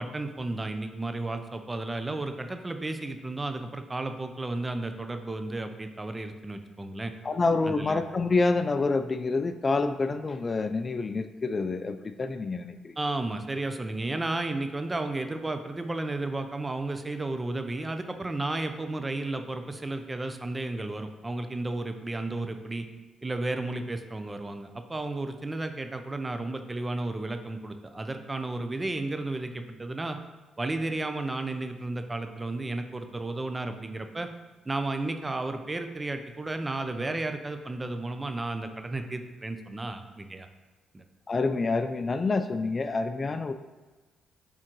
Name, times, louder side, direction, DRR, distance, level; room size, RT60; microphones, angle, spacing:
voice 1, 0.0-7.1 7.7-8.0 13.0-22.9 23.2-30.2 30.6-34.3 34.7-40.5 40.9-41.0, right 2 dB, 20° right, 7 dB, 0.5 m, -33 dB
voice 2, 7.2-12.9 41.3-43.5, left 3 dB, 35° left, 9 dB, 0.3 m, -27 dB
8.9 x 3.7 x 3.0 m, 1.2 s
cardioid pair, 90°, 0 cm